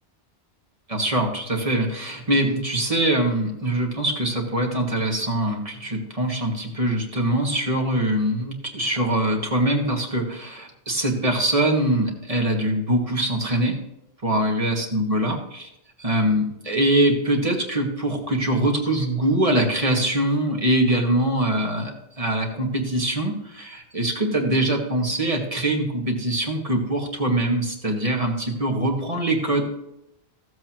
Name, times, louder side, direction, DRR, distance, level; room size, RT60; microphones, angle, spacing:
voice 1, 0.9-13.7 14.2-15.7 16.0-29.6, right 1 dB, 35° right, 0 dB, 1.8 m, -23 dB
14.5 x 8.0 x 3.0 m, 0.83 s
omnidirectional pair, 1.1 m